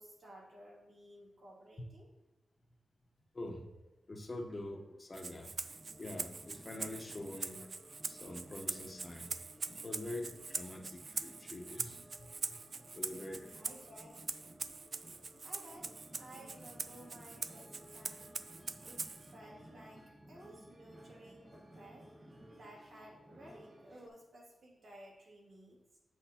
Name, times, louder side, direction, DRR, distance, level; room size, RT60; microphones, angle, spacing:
voice 1, 0.0-2.1 12.1-12.4 13.5-14.2 15.4-18.3 18.8-22.0 22.5-26.0, right 1 dB, 80° right, -3 dB, 2.4 m, -56 dB
voice 2, 3.3-3.7 4.1-5.5 6.0-7.7 8.1-9.3 9.7-12.3 12.9-13.6, left 1 dB, 30° left, 3 dB, 1.0 m, -45 dB
Rattle (instrument), 5.1-19.3, right 4 dB, 45° right, 0.3 m, -43 dB
sound 1, 5.6-24.1, right 1 dB, 25° right, 1.2 m, -57 dB
8.2 x 6.4 x 2.9 m, 1.1 s
wide cardioid pair, 130°, 0 cm